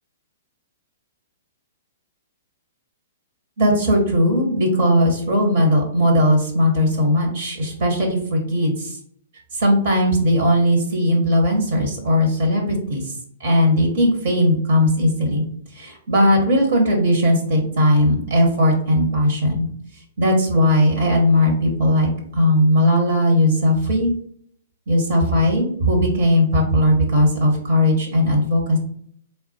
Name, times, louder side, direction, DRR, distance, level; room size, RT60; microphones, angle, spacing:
voice 1, 3.6-9.0 9.5-15.4 15.7-19.7 20.2-24.1 24.9-28.8, left 1 dB, 55° right, 1 dB, 1.2 m, -18 dB
3.4 x 2.2 x 4.3 m, 0.62 s
figure-of-eight pair, 115°, 0 cm